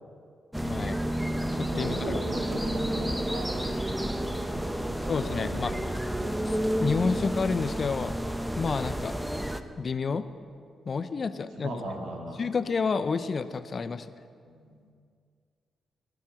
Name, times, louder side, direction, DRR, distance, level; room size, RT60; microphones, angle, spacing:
sound 1, 0.5-9.6, equal, 5° right, 0.9 m, -30 dB
voice 1, 0.6-1.0 1.5-2.2 5.0-5.7 6.4-9.4 9.8-10.3 10.8-11.7 12.4-14.1, left 5 dB, 50° left, 13 dB, 0.6 m, -30 dB
voice 2, 1.7-5.8 11.5-12.4 14.4-14.8, right 1 dB, 75° right, -1 dB, 2.6 m, -38 dB
19.5 x 7.2 x 5.9 m, 2.2 s
supercardioid pair, 45°, 0 cm